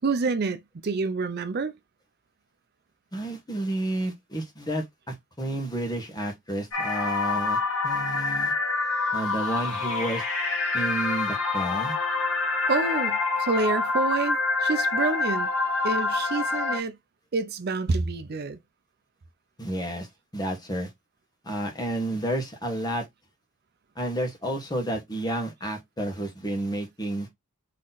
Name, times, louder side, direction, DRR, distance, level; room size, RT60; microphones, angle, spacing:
voice 1, 0.0-1.8 12.4-15.5 15.8-17.0 17.3-18.6, right 3 dB, 50° right, 0.5 m, -28 dB
voice 2, 3.1-8.5 9.1-10.2 10.7-11.9 19.6-20.9 21.4-23.1 23.9-27.3, right 1 dB, 20° left, 1.3 m, -31 dB
sound 1, 6.7-16.8, left 3 dB, 70° left, 2.0 m, -26 dB
4.1 x 3.1 x 4.0 m
head